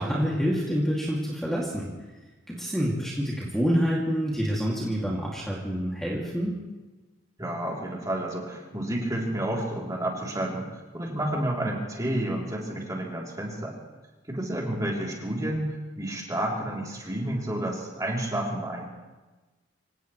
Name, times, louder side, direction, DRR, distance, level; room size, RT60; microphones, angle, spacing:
voice 1, 0.0-1.9 2.5-6.5, equal, ahead, -5 dB, 2.4 m, -27 dB
voice 2, 7.4-10.7 10.9-13.8 14.3-18.8, right 1 dB, 20° right, -2 dB, 3.2 m, -30 dB
26.0 x 17.5 x 3.2 m, 1.2 s
head